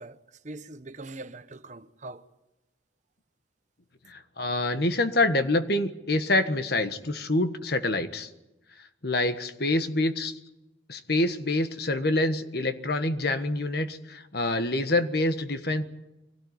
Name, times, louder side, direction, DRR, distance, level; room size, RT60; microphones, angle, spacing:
voice 1, 0.0-2.3, right 2 dB, 40° right, 0.9 m, -42 dB
voice 2, 4.1-8.3 9.0-10.3 10.9-15.8, left 2 dB, 55° left, 1.5 m, -26 dB
23.5 x 17.0 x 9.7 m
head